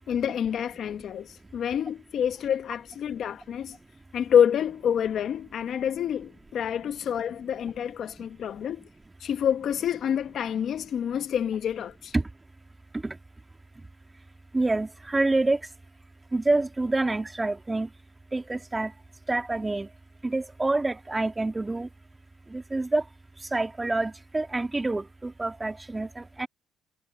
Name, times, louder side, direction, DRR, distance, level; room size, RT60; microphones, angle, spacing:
voice 1, 0.1-1.3 1.5-3.8 4.1-8.8 9.2-12.1, left 9 dB, 60° left, 1.4 m, -27 dB
voice 2, 14.5-15.6 16.3-17.9 18.3-18.9 19.3-19.9 20.2-21.9 22.5-23.0 23.5-26.5, right 2 dB, 15° right, 2.5 m, -27 dB
cardioid pair, 90°, 0 cm